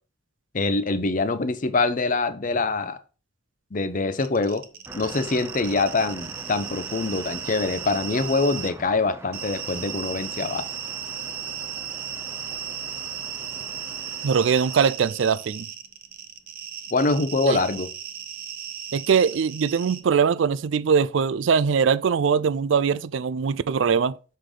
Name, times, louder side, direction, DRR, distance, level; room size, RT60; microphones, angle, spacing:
voice 1, 0.5-3.0 3.7-4.6 4.9-10.7 16.9-17.9, left 3 dB, 45° left, 0.6 m, -24 dB
sound 1, 4.1-8.7 9.3-20.0, right 9 dB, 50° right, 0.8 m, -36 dB
sound 2, 4.9-14.9, right 1 dB, 15° right, 0.5 m, -44 dB
voice 2, 14.2-15.7 17.4-17.6 18.9-24.1, right 6 dB, 75° right, 0.4 m, -21 dB
6.7 x 4.9 x 3.8 m
head